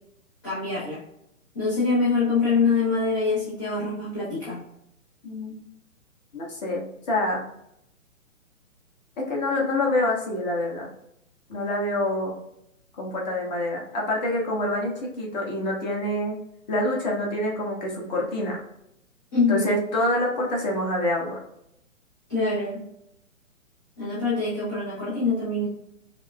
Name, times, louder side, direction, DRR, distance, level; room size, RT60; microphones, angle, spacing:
voice 1, 0.4-1.0 1.5-4.7 19.3-19.7 22.3-22.9 24.0-25.7, left 4 dB, 15° left, -10 dB, 0.4 m, -24 dB
voice 2, 5.2-5.6 6.3-7.5 9.3-10.9 11.5-12.4 12.9-16.4 16.7-18.6 19.5-21.4, left 1 dB, 30° left, -2 dB, 1.1 m, -26 dB
5.6 x 2.1 x 2.2 m, 0.78 s
figure-of-eight pair, 125°, 40 cm